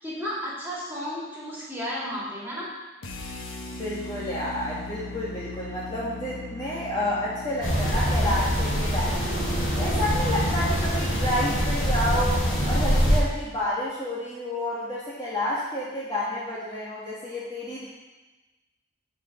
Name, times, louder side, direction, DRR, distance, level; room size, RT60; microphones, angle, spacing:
voice 1, 0.0-2.7, equal, 10° right, -7 dB, 2.6 m, -33 dB
sound 1, 3.0-9.2, left 2 dB, 75° left, 1.1 m, -39 dB
voice 2, 3.7-9.4 9.7-17.9, left 1 dB, 20° left, -8 dB, 1.5 m, -30 dB
sound 2, 7.6-13.2, equal, 45° left, 2.5 m, -24 dB
8.2 x 4.6 x 6.9 m, 1.1 s
head